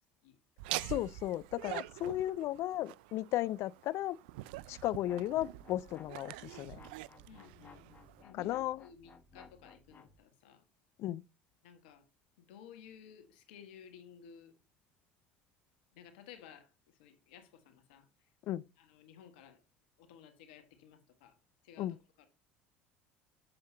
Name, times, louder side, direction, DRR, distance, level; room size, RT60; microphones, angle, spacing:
Laughter, 0.6-8.2, right 18 dB, 80° right, 0.3 m, -45 dB
voice 1, 0.8-4.2 4.7-6.8 8.4-8.8 11.0-11.2 18.5-18.6 21.8-22.0, left 14 dB, 60° left, 0.4 m, -35 dB
sound 1, 5.0-10.2, left 4 dB, 30° left, 1.5 m, -58 dB
voice 2, 7.3-10.7 11.6-12.0 12.4-14.5 15.9-18.1 18.8-19.6 20.0-21.4 21.6-22.3, left 8 dB, 80° left, 1.6 m, -56 dB
7.6 x 7.5 x 2.8 m
hypercardioid pair, 75°, 5 cm